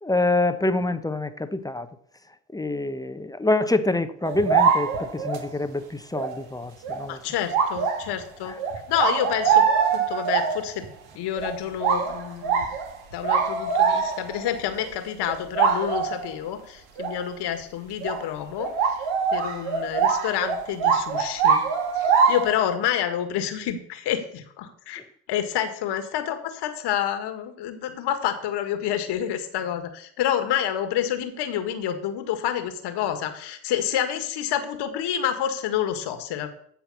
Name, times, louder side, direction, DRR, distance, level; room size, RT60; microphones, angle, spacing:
voice 1, 0.0-1.9 2.5-7.2 8.4-8.6, left 2 dB, 10° left, 10 dB, 0.9 m, -26 dB
sound 1, 4.2-5.5 6.1-6.3 6.8-7.0 7.5-8.2 8.6-10.9 11.4-11.5 11.8-14.5 14.8-14.9 15.2-16.3 17.0-17.2 18.0-18.2 18.6-22.6, right 6 dB, 70° right, 2.1 m, -23 dB
voice 2, 7.1-8.5 8.9-9.7 9.9-10.8 11.2-12.7 13.1-18.7 19.3-21.6 22.0-25.0 25.3-36.5, left 10 dB, 60° left, 7 dB, 1.9 m, -28 dB
15.5 x 5.8 x 5.6 m, 0.65 s
hypercardioid pair, 60°, 46 cm